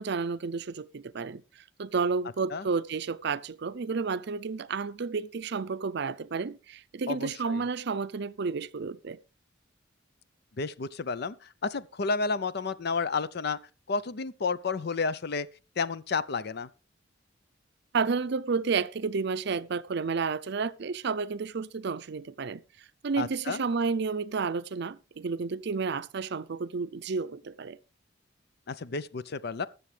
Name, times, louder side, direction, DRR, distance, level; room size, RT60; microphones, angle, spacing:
voice 1, 0.0-9.2 17.9-22.6 23.0-27.8, right 4 dB, 60° right, 0.5 m, -31 dB
voice 2, 7.1-7.6 10.6-13.6 13.9-15.5 15.8-16.7 23.2-23.6 28.7-29.7, left 4 dB, 60° left, 0.6 m, -31 dB
20.5 x 7.0 x 3.3 m
head